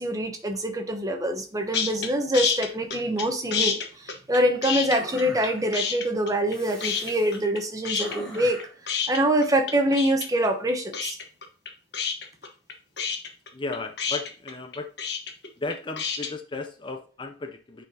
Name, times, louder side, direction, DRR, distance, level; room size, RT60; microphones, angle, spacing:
voice 1, 0.0-8.6 8.9-11.2, right 1 dB, 20° right, 5 dB, 0.9 m, -25 dB
sound 1, 1.7-2.1 2.3-3.2 3.5-5.5 5.7-6.5 6.8-7.6 7.8-16.3, left 6 dB, 60° left, 1.2 m, -28 dB
sound 2, 4.9-5.9 6.5-7.4 8.0-8.8, equal, 5° left, 2.0 m, -41 dB
voice 2, 13.5-14.9 15.6-17.8, left 3 dB, 25° left, 6 dB, 0.5 m, -35 dB
9.4 x 4.2 x 2.8 m, 0.39 s
head